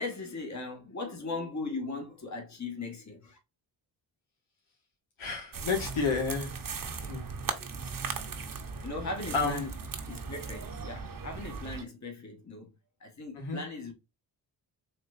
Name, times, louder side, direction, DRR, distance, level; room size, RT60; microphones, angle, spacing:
voice 1, 0.0-3.4 8.8-9.7 10.1-12.7 13.0-13.9, left 3 dB, 35° left, 1.8 m, -38 dB
voice 2, 5.2-6.5 7.0-7.2 9.3-9.6 13.4-13.6, left 4 dB, 80° left, 2.0 m, -30 dB
sound 1, 5.5-11.8, right 5 dB, 45° right, 1.0 m, -38 dB
4.2 x 3.3 x 2.6 m
cardioid pair, 55°, 48 cm